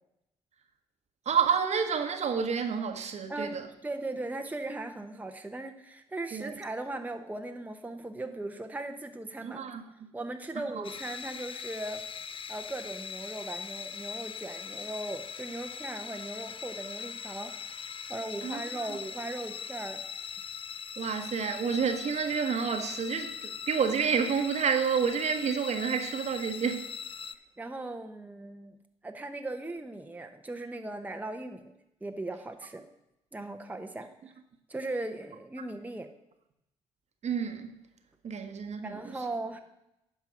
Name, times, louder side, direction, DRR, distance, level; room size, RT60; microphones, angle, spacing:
voice 1, 1.2-3.7 6.3-6.5 9.4-9.8 10.7-10.8 18.4-18.9 21.0-26.9 37.2-37.7 38.2-39.2, right 6 dB, 50° right, 1.2 m, -29 dB
voice 2, 3.3-9.6 10.1-12.0 12.5-17.5 18.1-20.0 27.6-28.8 29.0-31.7 32.0-32.8 33.3-34.1 34.7-36.1 38.8-39.6, right 2 dB, 10° right, 0.9 m, -38 dB
sound 1, 10.8-27.4, left 7 dB, 40° left, 0.6 m, -41 dB
11.5 x 4.6 x 5.9 m
hypercardioid pair, 45°, 14 cm